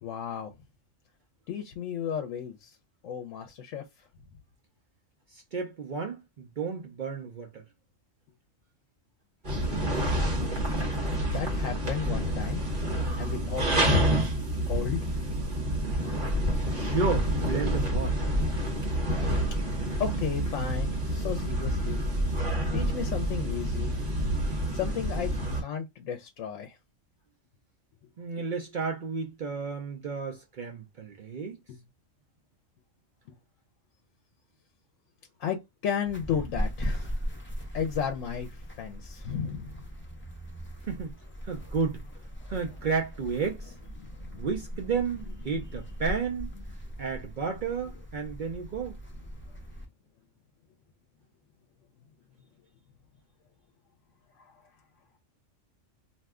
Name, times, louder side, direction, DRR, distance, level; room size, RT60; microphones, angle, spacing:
voice 1, 0.0-0.5 1.5-2.7 3.0-3.8 11.3-12.7 13.2-14.1 14.7-15.1 20.0-22.0 22.7-24.0 24.7-25.3 25.6-26.7 28.3-28.4 31.7-31.8 35.4-37.1 37.7-39.7 44.0-44.5 54.4-54.5, left 8 dB, 75° left, 0.9 m, -34 dB
voice 2, 5.3-7.6 16.7-18.2 28.2-31.6 40.9-41.2 41.4-42.0 42.5-43.7 44.4-46.5 47.0-49.0, right 5 dB, 55° right, 0.5 m, -32 dB
sound 1, 9.4-25.6, equal, 40° right, 1.1 m, -28 dB
sound 2, 36.1-49.9, equal, 15° left, 0.4 m, -39 dB
2.6 x 2.1 x 3.5 m
omnidirectional pair, 1.3 m